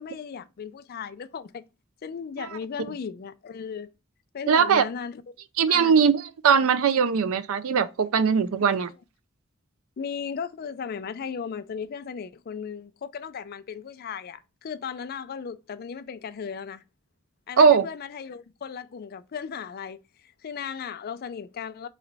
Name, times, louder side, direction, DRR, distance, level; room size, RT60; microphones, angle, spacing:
voice 1, 0.0-1.6 2.0-3.9 4.3-5.2 5.7-5.9 10.0-16.8 17.5-21.9, left 6 dB, 45° left, 0.4 m, -36 dB
voice 2, 4.5-4.9 5.6-8.9 17.6-17.9, right 6 dB, 80° right, 0.5 m, -20 dB
3.9 x 3.2 x 4.0 m
head